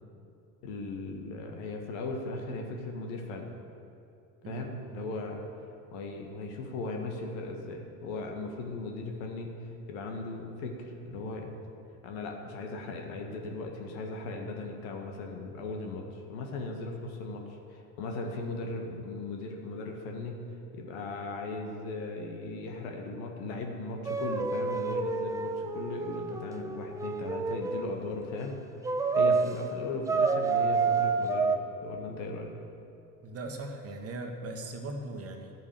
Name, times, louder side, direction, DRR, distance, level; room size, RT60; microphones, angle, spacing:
voice 1, 0.6-3.5 4.5-5.4 5.9-9.5 9.9-11.5 12.0-17.4 17.7-20.4 20.7-28.6 29.2-32.5, left 3 dB, 55° left, 2 dB, 1.9 m, -37 dB
sound 1, 24.1-28.0 28.8-29.5 30.1-31.6, right 4 dB, 10° right, 0.4 m, -28 dB
voice 2, 33.2-35.5, right 2 dB, 30° right, 3 dB, 1.6 m, -39 dB
13.0 x 8.5 x 6.8 m, 2.6 s
figure-of-eight pair, 65°, 46 cm